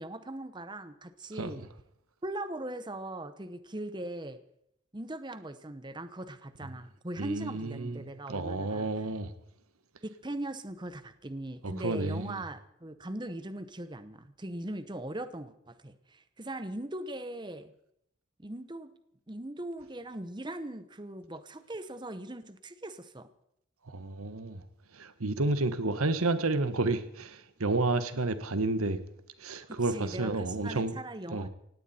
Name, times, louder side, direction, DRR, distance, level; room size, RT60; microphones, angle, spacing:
voice 1, 0.0-1.6 2.2-4.4 4.9-8.9 10.0-17.7 18.4-18.9 19.3-23.3 29.7-31.5, right 1 dB, 20° right, 0.8 m, -40 dB
voice 2, 7.2-9.3 11.6-12.4 23.9-24.6 24.9-29.0 29.4-31.0 31.3-31.5, right 2 dB, 85° right, 1.3 m, -31 dB
18.0 x 17.0 x 4.3 m
head